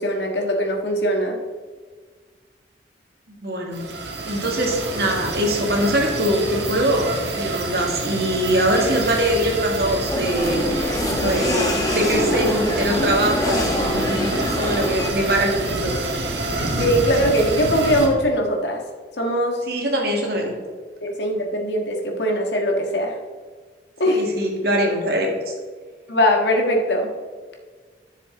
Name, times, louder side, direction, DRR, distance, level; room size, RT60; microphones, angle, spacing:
voice 1, 0.0-1.4 16.8-18.8 19.2-19.6 21.0-23.2 24.0-24.2 26.1-27.1, equal, 75° left, 2 dB, 1.6 m, -21 dB
voice 2, 3.4-3.8 4.2-10.6 11.1-16.1 19.7-20.5 24.1-25.5, equal, 60° right, 0 dB, 2.0 m, -23 dB
sound 1, 3.7-18.1, right 2 dB, 80° right, 1.7 m, -27 dB
sound 2, 10.1-15.1, left 1 dB, 20° left, 1.1 m, -24 dB
10.5 x 6.8 x 3.8 m, 1.5 s
head